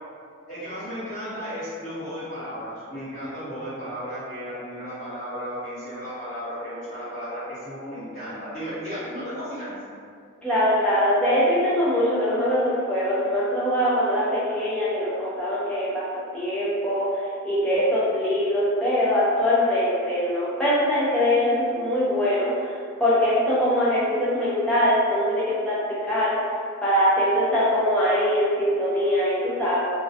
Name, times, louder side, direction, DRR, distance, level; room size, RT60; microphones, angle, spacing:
voice 1, 0.5-9.8, equal, 35° left, -13 dB, 1.2 m, -34 dB
voice 2, 10.4-25.8 26.0-26.4 26.8-29.8, equal, 5° left, -10 dB, 0.5 m, -22 dB
2.2 x 2.1 x 2.6 m, 2.2 s
head